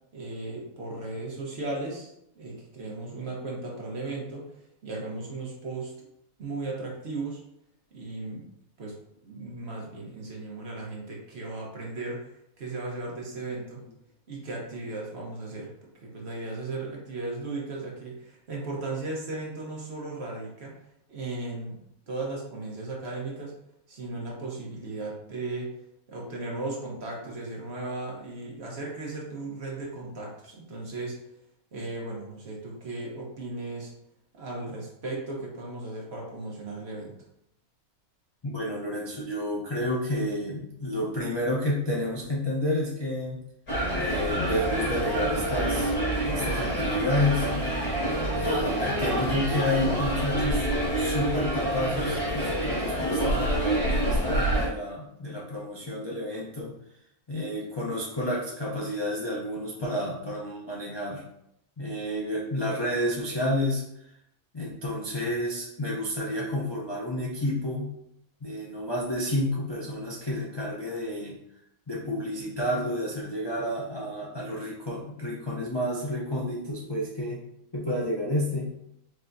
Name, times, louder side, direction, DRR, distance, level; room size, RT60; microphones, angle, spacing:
voice 1, 0.1-4.4 4.8-5.9 6.4-7.4 7.9-8.5 8.8-8.9 9.2-13.8 14.3-15.7 16.0-20.7 21.1-21.8 22.1-23.5 23.9-25.7 26.1-31.2 31.7-33.9 34.3-37.1, right 2 dB, 50° right, -2 dB, 1.1 m, -36 dB
voice 2, 38.5-43.4 44.0-45.9 46.2-47.5 48.4-50.7 50.9-56.7 57.3-61.2 61.8-64.1 64.5-67.9 68.4-71.4 71.9-77.4 77.7-78.7, left 1 dB, 40° left, -5 dB, 0.3 m, -30 dB
sound 1, 43.7-54.7, right 1 dB, 80° left, 2.2 m, -27 dB
4.4 x 3.3 x 2.6 m, 0.79 s
omnidirectional pair, 1.5 m